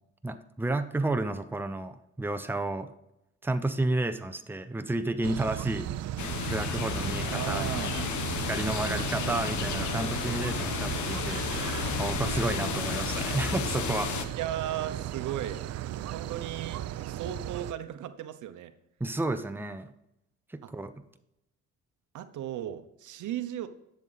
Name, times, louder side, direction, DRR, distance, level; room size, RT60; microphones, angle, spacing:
voice 1, 0.2-2.9 3.4-5.9 6.5-8.0 8.5-11.4 12.0-14.1 19.0-19.9 20.5-20.9, right 2 dB, 5° right, 9 dB, 0.7 m, -31 dB
sound 1, 5.2-17.7, right 12 dB, 60° right, 0.5 m, -36 dB
sound 2, 6.2-14.2, left 8 dB, 70° left, 1.1 m, -33 dB
voice 2, 7.2-7.9 9.2-9.4 12.2-12.6 14.3-15.6 16.0-18.7 20.6-20.7 22.1-23.7, right 11 dB, 75° right, 11 dB, 0.9 m, -36 dB
10.5 x 7.5 x 4.1 m, 0.84 s
cardioid pair, 90°, 30 cm